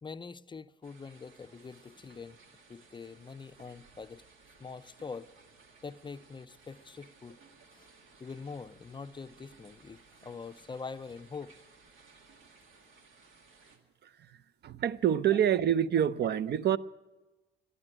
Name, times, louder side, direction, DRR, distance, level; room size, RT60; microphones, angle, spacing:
voice 1, 0.0-2.4 2.7-4.2 4.6-5.3 5.8-7.4 7.7-7.9 8.2-11.6, left 5 dB, 25° left, 0.4 m, -44 dB
sound 1, 0.8-13.8, right 4 dB, 90° right, 1.9 m, -59 dB
voice 2, 14.6-16.8, right 10 dB, 60° right, 0.5 m, -26 dB
12.5 x 10.5 x 9.8 m
cardioid pair, 90°, 20 cm